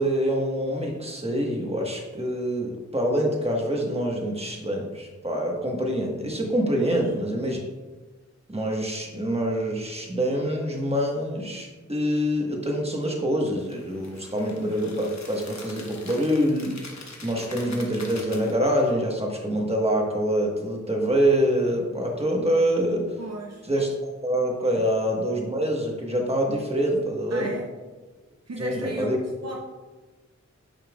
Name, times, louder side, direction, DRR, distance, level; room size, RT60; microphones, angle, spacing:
voice 1, 0.0-7.6 8.5-23.2 23.7-27.5 28.6-29.2, equal, 20° right, 0 dB, 1.4 m, -25 dB
sound 1, 13.5-18.9, left 3 dB, 65° left, 1.2 m, -44 dB
voice 2, 23.2-23.6 27.3-27.7 28.5-29.1 29.4-29.6, right 2 dB, 60° right, 0 dB, 0.8 m, -35 dB
8.9 x 5.6 x 2.4 m, 1.2 s
wide cardioid pair, 70°, 29 cm